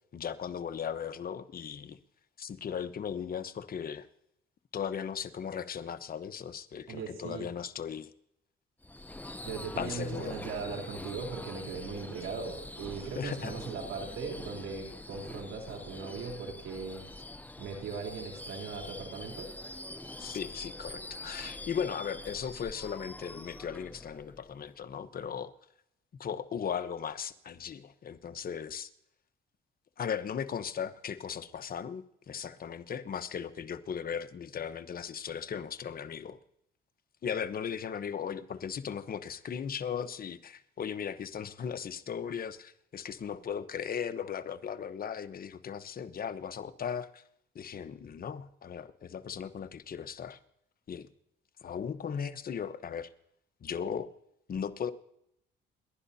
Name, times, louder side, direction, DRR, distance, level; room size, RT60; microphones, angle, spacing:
voice 1, 0.1-2.0 2.4-4.1 4.7-8.1 9.8-10.4 13.2-13.5 20.2-25.5 26.2-28.9 30.0-36.4 37.2-47.2 47.5-50.4 50.9-51.1 51.6-53.1 53.6-54.1 54.5-54.9, left 7 dB, 50° left, 1.0 m, -37 dB
voice 2, 6.9-7.5 9.4-17.0 17.6-19.5, right 5 dB, 85° right, 3.3 m, -39 dB
Subway metro underground / Screech, 8.8-24.8, left 2 dB, 10° left, 0.7 m, -45 dB
29.5 x 11.0 x 2.8 m
cardioid pair, 90°, 20 cm